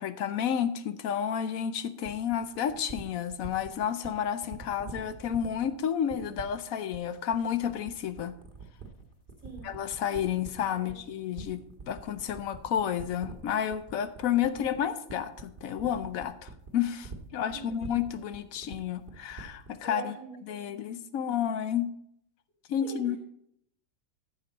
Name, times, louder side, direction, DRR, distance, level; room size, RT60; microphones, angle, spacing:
voice 1, 0.0-8.3 9.6-20.1 20.5-21.9 22.7-23.2, left 9 dB, 65° left, 12 dB, 0.9 m, -31 dB
sound 1, 2.0-19.8, right 4 dB, 30° right, 1.3 m, -45 dB
voice 2, 17.3-17.6 19.8-21.1 22.8-23.1, right 3 dB, 40° left, -2 dB, 4.4 m, -44 dB
14.0 x 6.9 x 4.1 m, 0.71 s
omnidirectional pair, 2.0 m